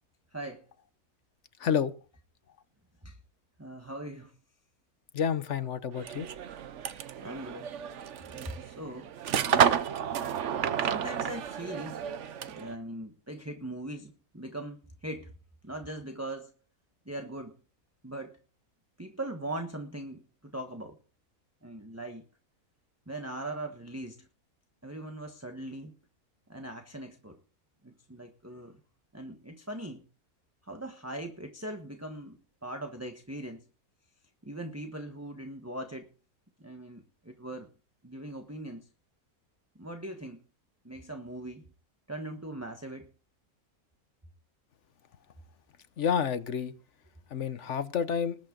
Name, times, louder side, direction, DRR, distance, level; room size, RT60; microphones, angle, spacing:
voice 1, 0.3-0.7 3.0-3.2 3.6-4.4 7.2-7.8 8.2-9.1 9.4-9.7 10.8-15.3 15.6-16.5 17.0-17.5 18.0-18.4 19.0-21.0 21.6-22.3 23.1-24.3 24.8-25.9 26.5-27.4 27.8-28.8 29.1-30.0 30.6-33.6 34.4-36.1 36.6-37.7 38.0-38.9 39.7-40.4 40.8-41.6 42.1-43.1, right 1 dB, 10° right, 1.2 m, -40 dB
voice 2, 1.6-1.9 5.1-6.3 46.0-46.7 47.3-48.4, left 7 dB, 55° left, 1.1 m, -29 dB
sound 1, 6.0-12.7, right 8 dB, 60° right, 1.0 m, -31 dB
20.5 x 8.5 x 3.9 m
omnidirectional pair, 1.6 m